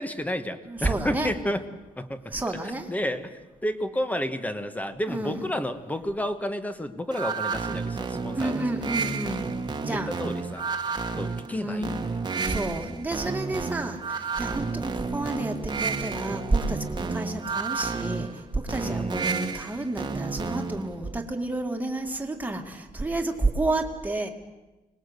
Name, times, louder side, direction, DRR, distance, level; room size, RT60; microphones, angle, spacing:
voice 1, 0.0-1.6 2.0-2.3 2.9-3.3 3.6-8.5 9.9-10.7 11.2-12.0 14.6-14.9 18.8-19.4, equal, 10° left, 10 dB, 1.2 m, -31 dB
voice 2, 0.7-1.4 2.3-2.9 5.1-5.5 8.3-10.2 11.5-24.3, right 2 dB, 10° right, 3 dB, 2.0 m, -30 dB
sound 1, 7.1-20.9, right 4 dB, 30° right, 1.5 m, -31 dB
25.5 x 20.0 x 8.1 m, 1.1 s
wide cardioid pair, 155°, 16 cm